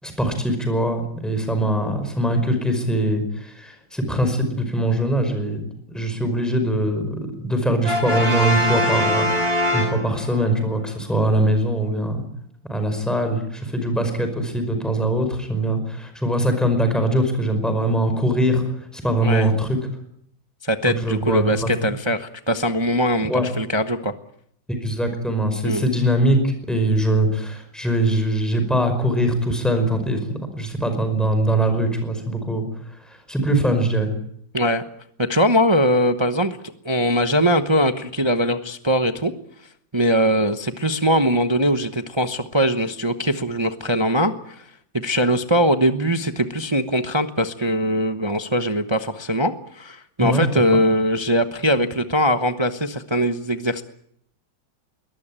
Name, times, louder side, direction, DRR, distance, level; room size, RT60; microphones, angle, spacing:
voice 1, 0.0-9.3 9.7-12.2 12.7-18.6 18.9-19.8 20.9-21.7 23.3-23.5 24.7-32.6 33.1-34.1 50.2-50.5, right 1 dB, ahead, 6 dB, 5.2 m, -22 dB
Brass instrument, 7.8-10.5, left 1 dB, 50° right, 8.4 m, -22 dB
voice 2, 20.6-24.1 25.6-25.8 34.5-34.8 35.2-36.6 36.8-39.3 39.9-44.6 44.9-53.8, equal, 20° right, 8 dB, 0.8 m, -21 dB
22.0 x 19.5 x 8.9 m, 0.69 s
omnidirectional pair, 2.0 m